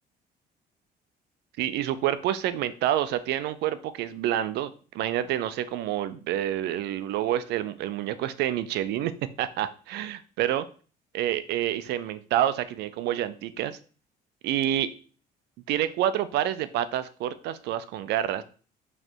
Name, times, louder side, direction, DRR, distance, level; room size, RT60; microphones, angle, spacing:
voice 1, 1.6-9.1 9.4-10.6 11.1-13.8 14.4-14.9 15.7-18.4, right 11 dB, 80° right, 13 dB, 0.6 m, -28 dB
6.4 x 3.3 x 4.5 m, 0.39 s
cardioid pair, 110°, 17 cm